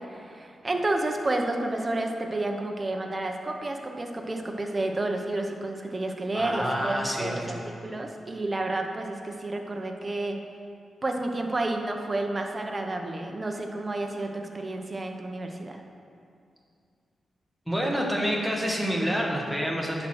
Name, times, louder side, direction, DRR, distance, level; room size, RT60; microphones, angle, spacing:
voice 1, 0.1-10.4 11.0-15.8, right 2 dB, 25° right, 3 dB, 0.8 m, -30 dB
voice 2, 6.3-7.6 17.7-20.1, equal, ahead, -2 dB, 1.4 m, -28 dB
10.5 x 4.3 x 6.4 m, 2.4 s
wide cardioid pair, 110°, 0 cm